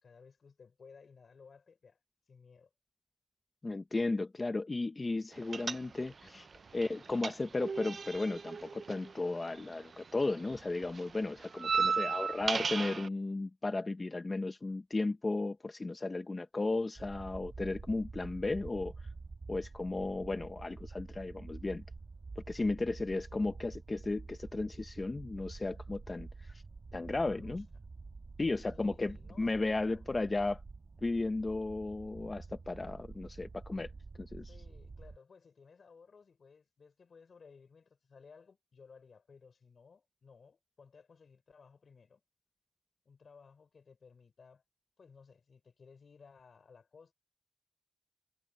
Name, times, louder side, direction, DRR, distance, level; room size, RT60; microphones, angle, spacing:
voice 1, 0.0-2.0 2.3-2.7 6.2-6.4 11.6-11.7 27.2-27.6 28.7-30.1 34.5-42.2 43.0-44.6 45.0-47.1, left 5 dB, 80° left, 4.5 m, -58 dB
voice 2, 3.6-6.5 6.7-18.9 19.5-21.8 22.4-26.6 26.9-27.6 28.4-30.6 31.0-33.9 34.2-34.5, left 2 dB, 35° left, 0.7 m, -35 dB
sound 1, 5.5-6.3 6.5-9.9 10.2-13.1, right 5 dB, 70° right, 0.5 m, -35 dB
sound 2, 16.9-35.2, right 3 dB, 55° right, 1.4 m, -48 dB
wide cardioid pair, 90°, 0 cm